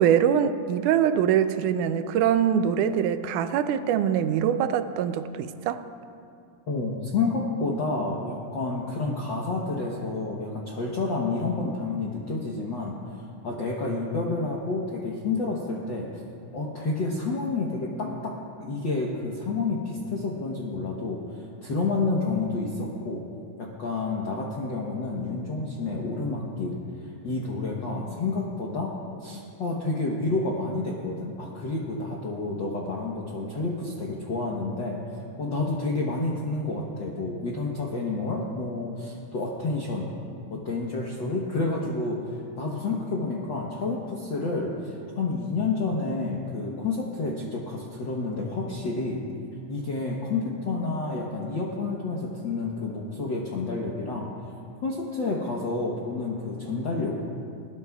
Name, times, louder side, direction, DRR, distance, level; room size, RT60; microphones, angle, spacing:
voice 1, 0.0-5.8, right 9 dB, 80° right, 11 dB, 2.0 m, -23 dB
voice 2, 6.7-16.2 16.5-23.2 23.6-28.9 29.2-35.0 35.4-40.1 40.5-49.2 49.7-54.3 54.8-57.1, left 3 dB, 70° left, -2 dB, 1.1 m, -29 dB
20.5 x 17.5 x 2.4 m, 2.4 s
omnidirectional pair, 3.6 m